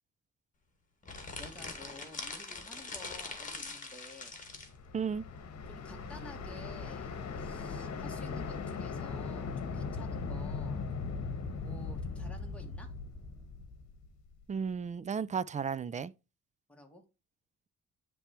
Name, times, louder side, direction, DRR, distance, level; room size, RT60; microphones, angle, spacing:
sound 1, 1.0-4.7, left 3 dB, 25° left, 1.7 m, -43 dB
voice 1, 1.4-4.4 5.7-7.1 7.4-10.8 11.6-12.9 16.7-17.0, left 1 dB, 5° left, 1.7 m, -52 dB
sound 2, 4.4-14.4, left 4 dB, 55° left, 1.2 m, -39 dB
voice 2, 4.9-5.2 14.5-16.1, right 6 dB, 25° right, 0.4 m, -34 dB
9.8 x 3.4 x 2.9 m
cardioid pair, 90°, 30 cm